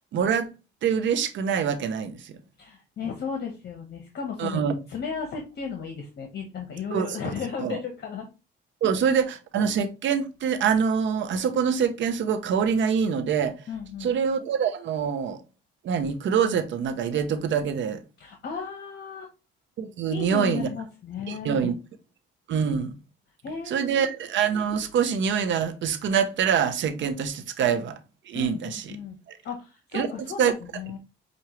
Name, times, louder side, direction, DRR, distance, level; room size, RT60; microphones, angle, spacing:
voice 1, 0.1-0.5 0.8-2.4 4.4-4.7 6.9-7.3 7.6-7.8 8.8-13.6 14.0-15.4 15.8-18.0 19.8-20.7 21.3-21.7 22.5-22.9 23.7-28.0 28.3-28.8 29.3-29.4 29.9-30.1 30.4-30.5, right 7 dB, 70° right, 0.9 m, -25 dB
voice 2, 2.6-4.6 4.9-8.3 8.8-9.0 13.7-14.1 18.2-19.3 20.1-21.7 23.4-24.1 28.3-31.0, left 6 dB, 55° left, 1.2 m, -35 dB
5.9 x 2.7 x 3.0 m
cardioid pair, 90°, 20 cm